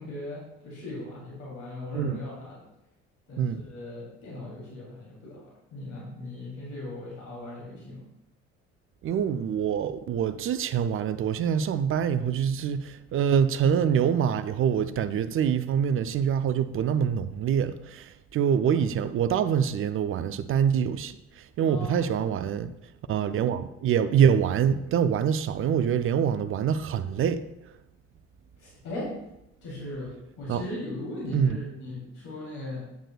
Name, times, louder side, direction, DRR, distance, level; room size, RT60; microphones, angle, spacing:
voice 1, 0.0-2.6 3.3-8.0 21.6-22.1 28.6-29.1 29.6-32.9, left 2 dB, 55° left, 3.0 m, -38 dB
voice 2, 9.0-22.7 23.1-27.4 30.5-30.6 31.3-31.6, right 8 dB, 35° right, 0.5 m, -25 dB
8.8 x 7.9 x 2.3 m
figure-of-eight pair, 55°, 37 cm